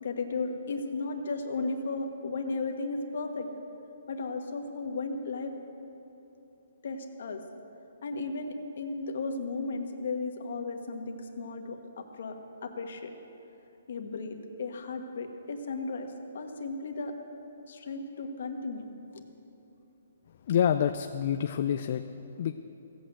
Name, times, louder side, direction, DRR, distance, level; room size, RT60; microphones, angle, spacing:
voice 1, 0.0-3.5 4.1-5.5 6.8-7.4 8.0-12.4 12.6-13.1 13.9-16.1 16.3-17.1 17.7-19.2, left 3 dB, 60° left, 4 dB, 1.5 m, -35 dB
voice 2, 20.5-22.0 22.4-22.5, left 9 dB, 45° left, 6 dB, 0.4 m, -27 dB
16.0 x 8.2 x 7.8 m, 3.0 s
hypercardioid pair, 165°, 0 cm